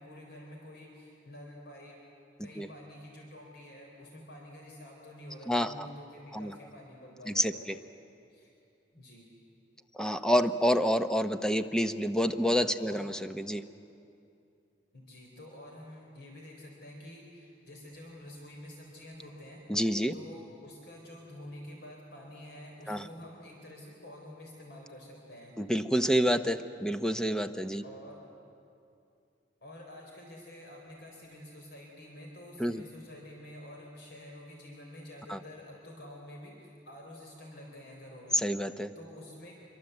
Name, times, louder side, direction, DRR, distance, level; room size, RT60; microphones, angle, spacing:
voice 1, 0.0-2.0 2.4-7.7 8.3-8.5 8.9-9.3 12.8-13.1 14.9-19.6 20.1-25.6 27.8-28.3 29.6-38.4 39.0-39.5, left 1 dB, 65° left, 0 dB, 4.0 m, -48 dB
voice 2, 5.5-5.9 6.3-6.5 7.3-7.8 9.9-13.6 19.7-20.1 22.9-23.1 25.6-27.8 32.6-32.8 35.3-35.4 38.3-38.9, equal, 5° left, 9 dB, 0.8 m, -28 dB
26.0 x 23.5 x 8.1 m, 2.6 s
head